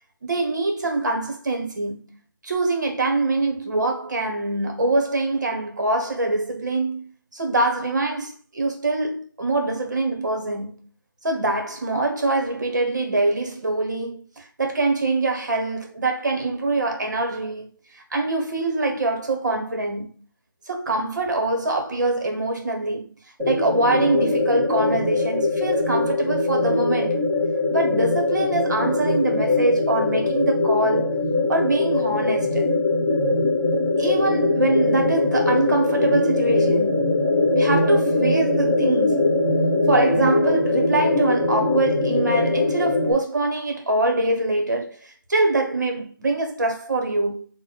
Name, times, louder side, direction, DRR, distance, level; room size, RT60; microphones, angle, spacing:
voice 1, 0.2-2.1 2.4-10.9 11.2-17.7 17.9-20.2 20.7-23.1 23.4-27.2 27.7-31.2 31.5-32.7 34.0-37.2 37.5-39.3 39.9-47.5, right 2 dB, 55° right, 1.2 m, -24 dB
sound 1, 23.4-43.1, left 2 dB, 10° right, 1.2 m, -21 dB
3.3 x 2.3 x 4.1 m
figure-of-eight pair, 160°, 11 cm